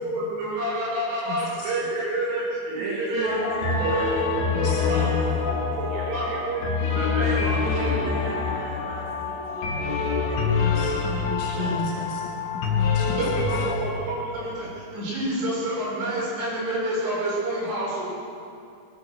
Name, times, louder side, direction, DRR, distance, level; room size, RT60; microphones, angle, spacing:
voice 1, 0.0-8.2 9.5-9.6 10.2-10.3 11.5-11.8 13.2-18.0, right 1 dB, 90° right, -5 dB, 9.8 m, -29 dB
voice 2, 1.3-1.7 4.5-5.4 10.6-12.3 12.5-13.2, left 4 dB, 85° left, -2 dB, 4.0 m, -33 dB
voice 3, 2.8-6.3 7.2-10.9 11.2-11.8, right 2 dB, 50° right, -5 dB, 4.5 m, -36 dB
sound 1, 3.2-13.7, left 5 dB, 60° left, 4.1 m, -26 dB
22.0 x 21.5 x 6.6 m, 2.5 s
omnidirectional pair, 5.4 m